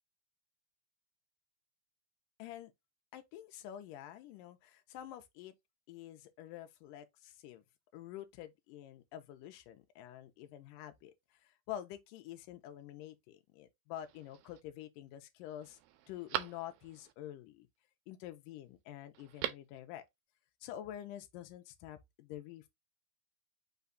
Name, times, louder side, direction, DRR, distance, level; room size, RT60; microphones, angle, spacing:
voice 1, 2.4-2.7 3.1-5.5 5.9-7.6 7.9-15.8 16.1-17.7 18.1-20.1 20.6-22.7, left 12 dB, 80° left, 2.1 m, -48 dB
Telephone, 14.0-14.6 15.1-15.2 15.6-17.1 19.1-19.8 20.1-20.2, right 13 dB, 90° right, 2.4 m, -42 dB
5.7 x 2.3 x 3.9 m
omnidirectional pair, 4.0 m